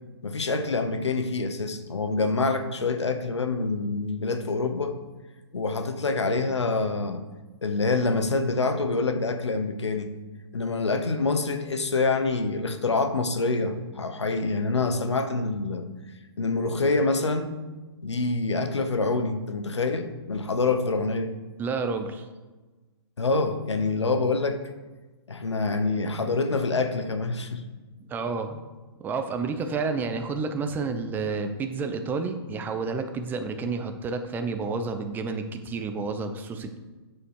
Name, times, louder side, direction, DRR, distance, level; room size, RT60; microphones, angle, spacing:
voice 1, 0.2-5.0 5.5-7.2 7.6-10.1 10.5-15.9 16.4-17.6 18.0-21.3 23.2-24.6 25.3-27.6, left 3 dB, 90° left, 9 dB, 1.1 m, -26 dB
voice 2, 21.6-22.3 28.1-28.6 29.0-36.8, right 4 dB, 15° right, 7 dB, 0.7 m, -30 dB
8.7 x 6.9 x 4.8 m, 1.2 s
hypercardioid pair, 135°, 14 cm